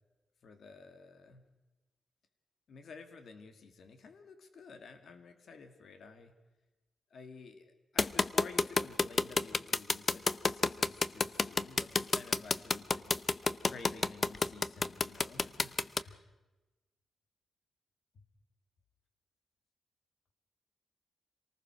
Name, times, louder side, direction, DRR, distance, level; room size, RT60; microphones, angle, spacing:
voice 1, 0.4-1.4 2.7-6.3 7.1-13.2 13.7-16.3 18.1-18.2, left 4 dB, 65° left, 8 dB, 2.4 m, -52 dB
sound 1, 8.0-16.0, left 4 dB, 35° left, 0.7 m, -28 dB
26.5 x 19.0 x 6.4 m, 1.1 s
wide cardioid pair, 120°, 0 cm